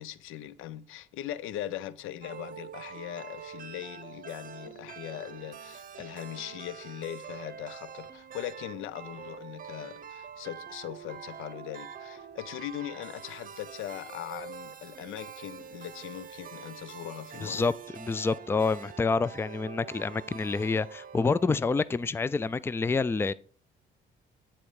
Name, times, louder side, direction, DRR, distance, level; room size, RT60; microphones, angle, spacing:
voice 1, 0.0-17.7, left 12 dB, 90° left, 0.5 m, -40 dB
sound 1, 2.2-22.1, right 7 dB, 45° right, 0.8 m, -45 dB
voice 2, 17.4-23.3, left 4 dB, 10° left, 0.3 m, -28 dB
9.0 x 4.3 x 4.8 m
cardioid pair, 90°, 20 cm